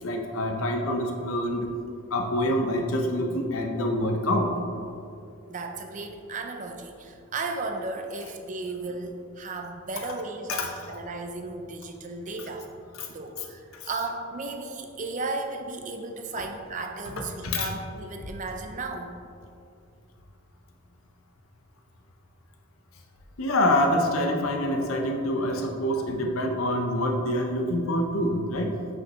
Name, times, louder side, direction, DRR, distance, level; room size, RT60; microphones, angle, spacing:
voice 1, 0.0-1.7 2.1-4.5 10.5-10.7 13.0-13.1 13.7-13.9 17.4-17.7 23.4-28.8, left 1 dB, 85° left, 3 dB, 0.7 m, -26 dB
voice 2, 5.5-12.7 13.1-19.1, right 3 dB, 35° right, 4 dB, 0.4 m, -35 dB
6.0 x 5.2 x 3.0 m, 2.5 s
head